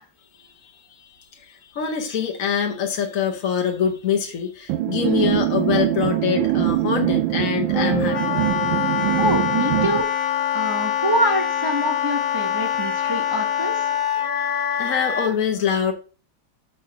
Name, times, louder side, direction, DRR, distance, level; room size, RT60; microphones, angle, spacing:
voice 1, 1.4-8.4 12.8-12.9 14.8-15.9, left 7 dB, 50° left, 3 dB, 1.1 m, -24 dB
sound 1, 4.7-10.0, right 14 dB, 90° right, 1.5 m, -23 dB
Wind instrument woodwind instrument, 7.7-15.3, left 9 dB, 85° left, 1.9 m, -24 dB
voice 2, 9.2-10.0 10.5-13.9, equal, 35° right, 3 dB, 0.3 m, -25 dB
6.6 x 4.4 x 5.7 m, 0.37 s
omnidirectional pair, 2.1 m